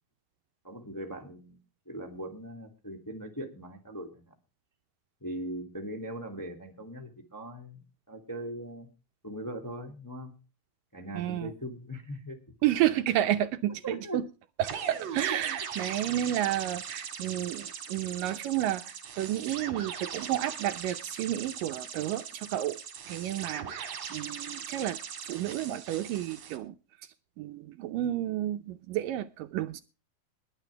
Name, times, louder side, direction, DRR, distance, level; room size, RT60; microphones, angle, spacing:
voice 1, 0.6-1.6 1.9-4.3 5.2-7.8 8.1-8.9 9.2-10.3 10.9-12.4 13.8-14.2 15.3-15.5, right 1 dB, 5° left, 1.7 m, -40 dB
voice 2, 11.1-11.5 12.6-14.2 14.6-22.8 23.1-25.0 25.3-26.7 27.4-29.8, right 13 dB, 75° right, 2.3 m, -31 dB
sound 1, 14.6-26.6, right 7 dB, 50° right, 2.9 m, -40 dB
21.5 x 9.1 x 3.3 m
omnidirectional pair, 4.2 m